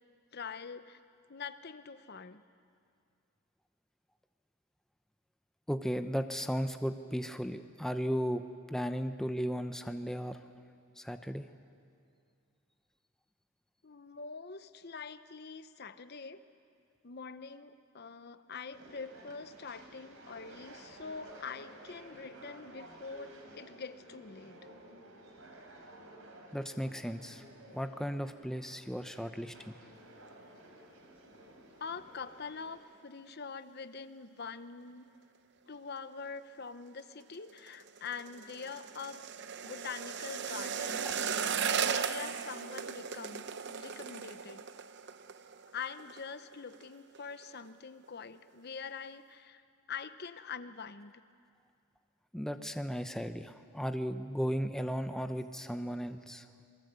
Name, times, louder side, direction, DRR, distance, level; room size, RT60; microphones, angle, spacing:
voice 1, 0.3-1.0 1.3-2.4 13.8-16.4 17.0-24.7 31.8-35.0 35.7-39.2 39.6-41.1 41.8-44.6 45.7-51.1, left 5 dB, 45° left, 12 dB, 0.7 m, -44 dB
voice 2, 5.7-10.4 11.0-11.5 26.5-27.4 27.7-29.8 52.3-56.5, equal, ahead, 8 dB, 0.7 m, -35 dB
sound 1, 18.7-32.8, right 1 dB, 70° right, 3.8 m, -54 dB
sound 2, 37.2-46.3 46.5-46.9 47.2-47.7 48.0-48.1, right 7 dB, 50° right, 0.8 m, -37 dB
28.0 x 22.0 x 8.1 m, 2.3 s
head